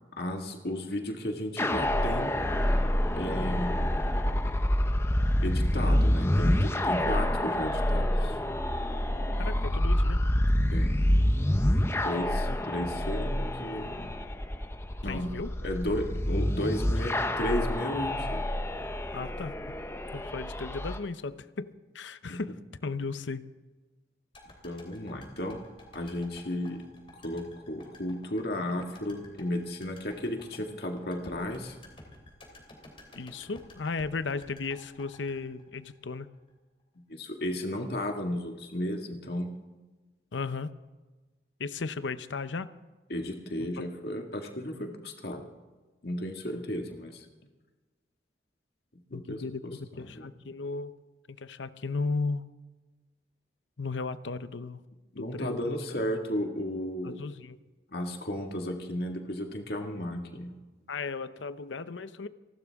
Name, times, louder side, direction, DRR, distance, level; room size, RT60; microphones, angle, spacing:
voice 1, 0.2-2.4 2.6-2.8 3.1-3.8 5.4-8.4 10.7-11.0 12.0-14.1 15.0-15.3 15.6-18.4 22.3-22.4 24.6-25.6 25.9-26.8 27.2-31.8 37.1-39.5 43.1-45.5 46.0-47.3 49.1-50.3 55.1-57.2 57.9-60.5, left 1 dB, 60° left, 3 dB, 2.0 m, -34 dB
sound 1, 1.6-21.0, left 1 dB, 15° left, 0.7 m, -27 dB
voice 2, 9.4-10.2 12.5-12.6 15.0-15.5 19.1-19.5 20.1-22.5 22.8-23.4 33.1-36.3 40.3-40.7 41.6-42.7 49.1-50.9 51.3-52.4 53.8-54.8 55.2-55.6 57.0-57.6 60.9-62.3, left 4 dB, 90° left, 13 dB, 0.7 m, -35 dB
sound 2, 24.3-36.5 36.8-36.9, left 1 dB, 30° left, 3.0 m, -52 dB
29.0 x 12.5 x 3.6 m, 1.2 s
head